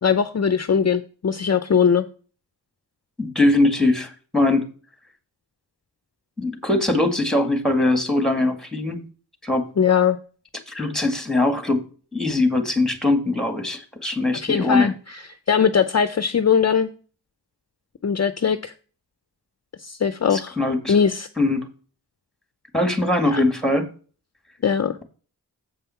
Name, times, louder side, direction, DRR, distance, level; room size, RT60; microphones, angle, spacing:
voice 1, 0.0-2.0 9.8-10.2 14.4-15.2 15.5-16.9 18.0-18.7 19.8-20.6 20.9-21.3 23.3-23.4 24.6-25.0, left 7 dB, 40° left, 11 dB, 0.6 m, -20 dB
voice 2, 3.2-4.7 6.4-9.0 9.4-9.7 10.7-11.8 12.1-14.9 20.3-21.0 21.4-21.7 22.7-23.9, left 2 dB, ahead, 8 dB, 1.9 m, -21 dB
7.9 x 5.5 x 5.7 m, 0.39 s
cardioid pair, 65°, 41 cm